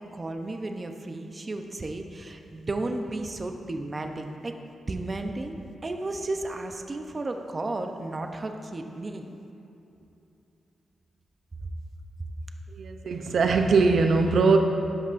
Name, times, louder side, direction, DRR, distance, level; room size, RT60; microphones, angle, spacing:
voice 1, 0.1-4.5 4.8-9.3, right 2 dB, 35° right, 5 dB, 0.7 m, -33 dB
voice 2, 12.7-14.6, right 4 dB, 70° right, 5 dB, 0.6 m, -21 dB
12.0 x 11.0 x 2.6 m, 2.8 s
cardioid pair, 80°, 0 cm